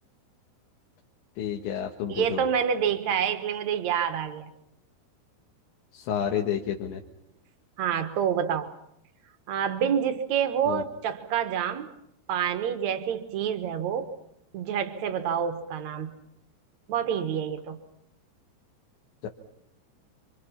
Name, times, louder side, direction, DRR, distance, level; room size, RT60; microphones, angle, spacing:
voice 1, 1.4-2.5 5.9-7.0 10.7-10.8 19.2-19.3, left 9 dB, 80° left, 1 dB, 3.8 m, -30 dB
voice 2, 2.1-4.5 7.8-8.7 9.5-11.9 12.3-14.1 14.5-16.1 16.9-17.8, right 8 dB, 85° right, 8 dB, 1.5 m, -27 dB
29.0 x 25.5 x 5.8 m, 0.78 s
omnidirectional pair, 5.3 m